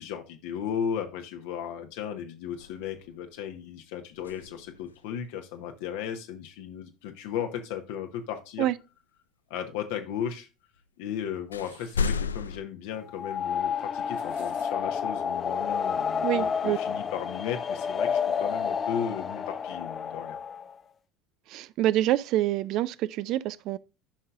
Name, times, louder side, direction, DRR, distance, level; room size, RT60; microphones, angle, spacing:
voice 1, 0.0-8.7 9.5-10.5 11.0-20.4, left 8 dB, 65° left, 1.0 m, -35 dB
sound 1, 2.6-3.4 4.1-5.1 8.6-8.7 10.8-10.9 11.5-12.6, left 5 dB, 80° left, 0.3 m, -33 dB
sound 2, 11.6-12.2 13.8-14.7, right 3 dB, 75° right, 2.4 m, -53 dB
sound 3, 13.1-20.7, left 7 dB, 30° left, 0.6 m, -30 dB
voice 2, 16.2-16.8 21.5-23.8, right 14 dB, 55° right, 0.4 m, -26 dB
11.5 x 5.5 x 2.4 m
figure-of-eight pair, 70°, 0 cm